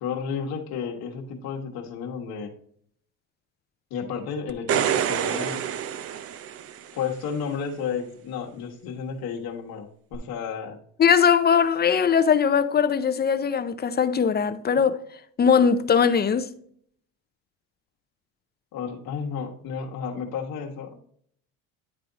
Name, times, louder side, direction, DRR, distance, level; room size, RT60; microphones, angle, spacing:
voice 1, 0.0-2.5 3.9-5.6 6.9-10.8 14.7-14.8 18.7-21.0, left 6 dB, 65° left, 1.3 m, -32 dB
sound 1, 4.5-7.1 10.1-10.2, right 9 dB, 40° right, 0.5 m, -27 dB
voice 2, 11.0-15.0 15.4-16.5, left 7 dB, 25° left, 0.5 m, -20 dB
10.0 x 3.4 x 3.9 m
supercardioid pair, 90°, 38 cm